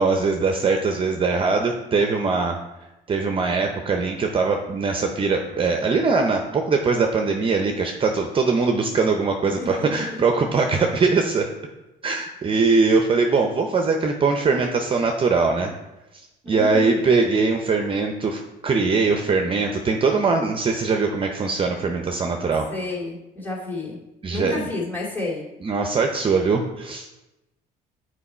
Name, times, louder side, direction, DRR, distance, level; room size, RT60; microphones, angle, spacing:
voice 1, 0.0-2.6 3.1-11.5 12.0-15.7 16.5-22.7 24.2-24.7 25.6-27.1, right 4 dB, 30° right, 4 dB, 0.6 m, -21 dB
voice 2, 9.6-10.2 16.4-17.0 22.7-24.0 24.3-25.4, left 2 dB, 10° left, -4 dB, 2.3 m, -30 dB
7.0 x 4.5 x 4.3 m, 0.96 s
cardioid pair, 110°, 17 cm